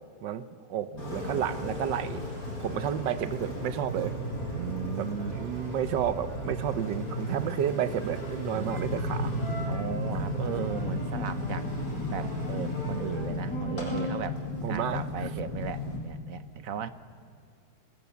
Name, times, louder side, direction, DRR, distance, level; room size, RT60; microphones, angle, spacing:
voice 1, 0.2-2.3 2.6-4.1 5.0-9.3 14.6-15.3, right 10 dB, 75° right, 13 dB, 1.4 m, -31 dB
voice 2, 0.9-1.4 4.5-5.4 7.4-7.9 8.5-9.3 9.7-11.7 12.1-14.4 14.7-16.9, right 8 dB, 60° right, 13 dB, 1.0 m, -36 dB
Engine, 1.0-16.0, equal, 50° left, 5.6 m, -36 dB
sound 1, 8.7-16.0, left 3 dB, 70° left, 2.5 m, -35 dB
27.5 x 19.5 x 7.0 m, 2.3 s
omnidirectional pair, 2.0 m